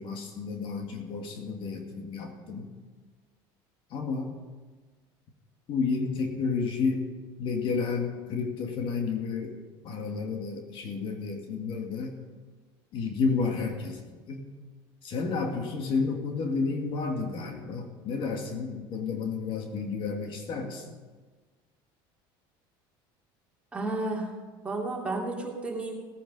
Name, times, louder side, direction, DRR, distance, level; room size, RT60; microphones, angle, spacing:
voice 1, 0.0-2.7 3.9-4.3 5.7-7.0 7.4-9.6 9.8-12.1 12.9-14.0 14.3-14.4 15.0-20.8, left 4 dB, 50° left, 3 dB, 1.9 m, -31 dB
voice 2, 23.7-24.3 24.6-25.9, right 2 dB, 10° right, -2 dB, 2.9 m, -32 dB
17.5 x 9.2 x 5.3 m, 1.4 s
supercardioid pair, 120°, 11 cm